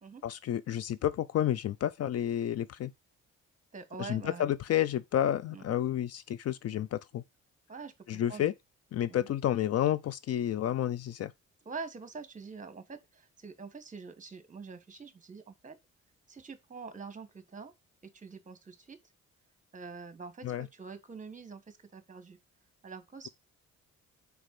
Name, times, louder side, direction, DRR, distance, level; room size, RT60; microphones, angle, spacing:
voice 1, 0.2-2.9 4.0-7.2 8.1-8.5 8.9-11.3 20.4-20.7, left 11 dB, 55° left, 0.5 m, -30 dB
voice 2, 3.7-4.5 5.4-5.7 7.7-8.5 9.1-9.3 11.6-15.8 16.3-17.7 18.0-19.0 19.7-22.4 22.8-23.3, right 4 dB, 25° right, 1.3 m, -45 dB
5.1 x 4.7 x 5.9 m
cardioid pair, 90°, 30 cm